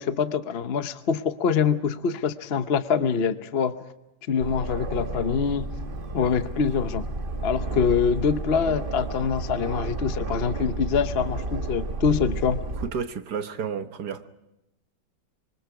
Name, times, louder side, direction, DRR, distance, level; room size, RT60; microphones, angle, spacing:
voice 1, 0.0-3.8 4.3-5.7 6.1-7.1 7.4-12.6, left 6 dB, 50° left, 0.7 m, -25 dB
Aircraft, 4.4-12.9, right 2 dB, 35° right, 1.2 m, -32 dB
voice 2, 12.8-14.3, right 6 dB, 60° right, 1.6 m, -31 dB
26.0 x 24.5 x 4.7 m
omnidirectional pair, 2.0 m